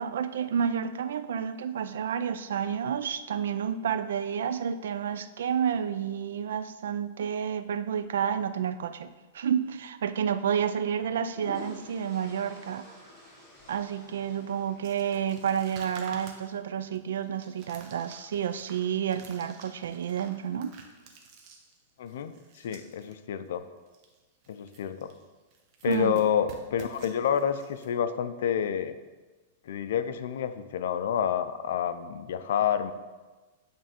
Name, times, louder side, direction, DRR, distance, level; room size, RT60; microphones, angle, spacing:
voice 1, 0.0-12.9 13.7-20.8 25.9-26.2, right 8 dB, 85° right, 12 dB, 0.4 m, -30 dB
sound 1, 9.6-9.8 11.0-15.6, left 1 dB, ahead, 2.2 m, -49 dB
sound 2, 14.8-23.1 23.4-23.5 23.9-24.2 24.4-25.2 25.5-27.9, right 5 dB, 35° right, 0.8 m, -50 dB
voice 2, 22.0-23.6 24.5-25.1 25.8-29.0 29.7-32.9, left 8 dB, 70° left, 11 dB, 0.4 m, -29 dB
8.5 x 3.4 x 4.4 m, 1.2 s
supercardioid pair, 155°, 0 cm